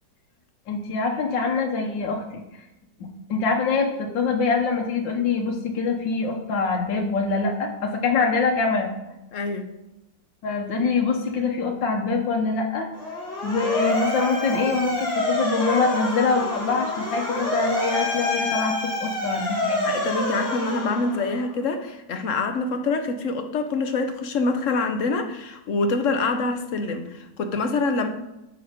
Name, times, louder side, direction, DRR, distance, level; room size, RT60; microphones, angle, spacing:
voice 1, 0.7-2.4 3.0-8.9 10.4-12.9 13.4-19.8, left 4 dB, 90° left, 2 dB, 1.9 m, -24 dB
voice 2, 9.3-9.7 19.8-28.1, left 3 dB, 50° left, 7 dB, 1.0 m, -25 dB
Motor vehicle (road) / Siren, 12.9-21.5, left 1 dB, 35° left, 3.2 m, -27 dB
9.2 x 6.4 x 5.2 m, 0.97 s
omnidirectional pair, 2.0 m